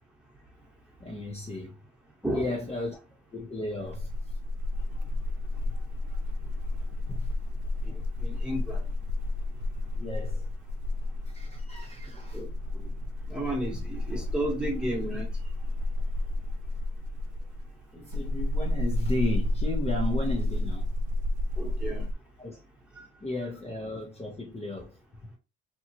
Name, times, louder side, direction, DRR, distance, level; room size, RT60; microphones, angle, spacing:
voice 1, 1.0-1.8 2.3-2.9 3.3-4.1 7.1-7.3 7.9-8.0 10.0-10.5 11.3-12.4 17.9-20.9 22.4-22.6 23.2-25.0, left 2 dB, 20° left, 0.8 m, -34 dB
voice 2, 2.2-2.6 8.2-8.8 12.3-12.5 12.8-12.9 13.3-15.3 21.6-22.1 23.0-23.1, right 1 dB, 5° right, 1.3 m, -32 dB
sound 1, 3.9-22.1, left 1 dB, 85° right, 0.5 m, -31 dB
2.9 x 2.3 x 2.8 m
cardioid pair, 90°, 30 cm